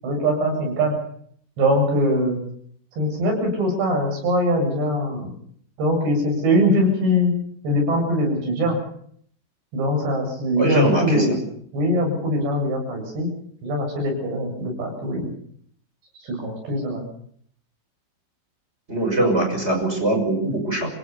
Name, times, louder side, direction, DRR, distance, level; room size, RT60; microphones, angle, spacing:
voice 1, 0.0-0.9 1.6-2.4 3.0-5.3 5.8-7.3 7.6-8.8 9.7-11.4 11.7-13.3 13.6-15.3 16.2-17.0, equal, 70° right, 1 dB, 10.0 m, -22 dB
voice 2, 10.6-11.3 18.9-20.9, right 1 dB, 15° right, 3 dB, 6.0 m, -21 dB
26.5 x 18.0 x 7.0 m, 0.64 s
omnidirectional pair, 5.2 m